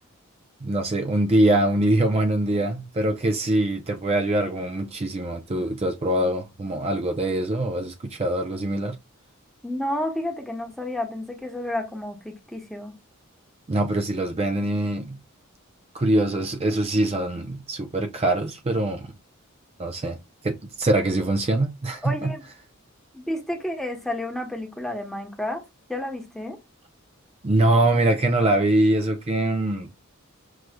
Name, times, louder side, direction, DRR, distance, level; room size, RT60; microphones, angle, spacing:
voice 1, 0.6-9.0 13.7-15.2 15.9-19.1 19.8-20.2 20.4-22.3 27.4-29.9, right 1 dB, 30° right, 0.5 m, -23 dB
voice 2, 9.6-12.9 22.0-22.4 23.1-25.6 25.9-26.6, left 1 dB, ahead, 0.9 m, -31 dB
6.3 x 3.0 x 2.2 m
head